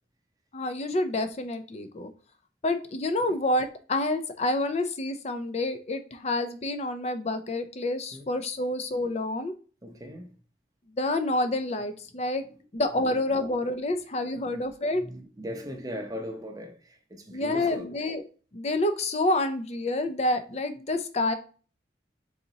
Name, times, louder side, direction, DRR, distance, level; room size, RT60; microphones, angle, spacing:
voice 1, 0.5-2.1 2.6-9.5 11.0-12.4 12.7-15.0 17.3-18.2 18.5-21.3, left 2 dB, 35° left, 0.5 m, -28 dB
voice 2, 9.8-10.3 12.9-13.4 14.5-14.6 15.0-17.9, equal, 20° right, 0.6 m, -39 dB
4.0 x 3.9 x 2.8 m
head